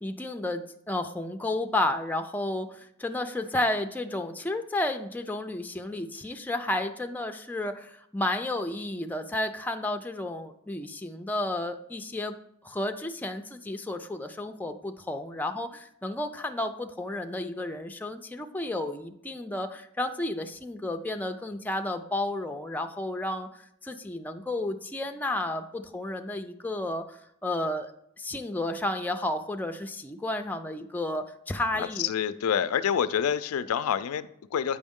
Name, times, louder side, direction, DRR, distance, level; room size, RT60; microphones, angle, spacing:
voice 1, 0.0-12.4 12.6-27.9 28.2-32.1, left 1 dB, 10° left, 5 dB, 0.4 m, -32 dB
voice 2, 31.7-34.8, left 8 dB, 85° left, 14 dB, 0.4 m, -27 dB
8.4 x 5.2 x 3.6 m, 0.74 s
head